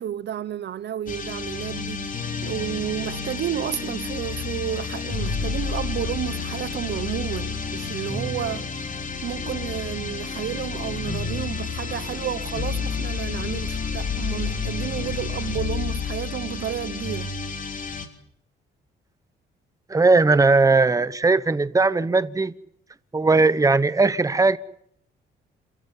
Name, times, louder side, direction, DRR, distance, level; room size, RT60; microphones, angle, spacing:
voice 1, 0.0-2.1 2.4-8.9 9.2-17.3, right 10 dB, 60° right, 0.9 m, -31 dB
sound 1, 1.1-18.1, left 5 dB, 40° left, 3.3 m, -30 dB
voice 2, 19.9-22.5 23.1-24.6, right 3 dB, 15° right, 1.1 m, -18 dB
27.5 x 14.0 x 9.9 m
cardioid pair, 90°, 20 cm